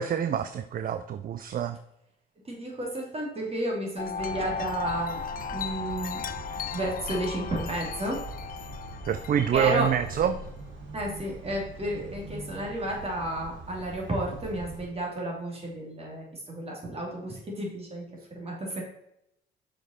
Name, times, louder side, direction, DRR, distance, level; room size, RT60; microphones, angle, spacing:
voice 1, 0.0-1.8 9.1-10.3, right 8 dB, 45° right, 10 dB, 0.4 m, -26 dB
voice 2, 2.4-5.2 5.5-6.2 6.7-8.2 9.5-9.9 10.9-18.8, right 1 dB, 30° right, -1 dB, 2.8 m, -32 dB
Wind chime, 4.0-10.5, left 7 dB, 45° left, 0.4 m, -37 dB
sound 1, 4.2-14.9, right 2 dB, 70° right, 1.5 m, -42 dB
6.5 x 5.2 x 4.4 m, 0.81 s
cardioid pair, 90°, 20 cm